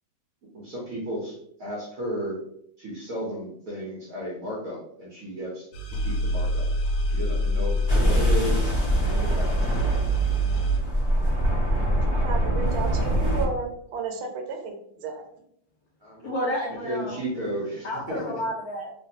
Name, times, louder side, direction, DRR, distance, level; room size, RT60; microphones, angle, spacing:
voice 1, 0.5-2.4 2.8-5.7 6.0-6.7 7.1-9.6 16.0-16.3 16.8-18.4, equal, 65° right, -5 dB, 0.8 m, -33 dB
sound 1, 5.7-10.8, equal, 90° left, 1.5 m, -26 dB
sound 2, 7.9-13.5, right 1 dB, 25° left, 0.5 m, -24 dB
voice 2, 12.1-15.2, right 4 dB, 80° right, 3 dB, 1.4 m, -33 dB
voice 3, 16.2-17.2 17.8-18.9, equal, 70° left, -5 dB, 0.9 m, -30 dB
3.3 x 2.2 x 2.6 m, 0.71 s
omnidirectional pair, 2.3 m